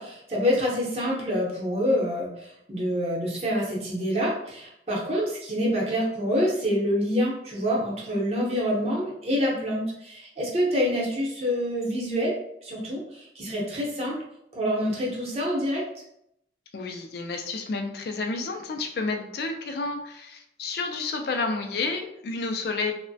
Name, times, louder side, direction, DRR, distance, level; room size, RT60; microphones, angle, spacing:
voice 1, 0.0-12.3 12.6-14.2 14.5-15.8, equal, 35° right, -4 dB, 0.7 m, -26 dB
voice 2, 16.7-23.0, left 3 dB, 55° left, 5 dB, 0.3 m, -30 dB
3.0 x 2.1 x 2.6 m, 0.77 s
head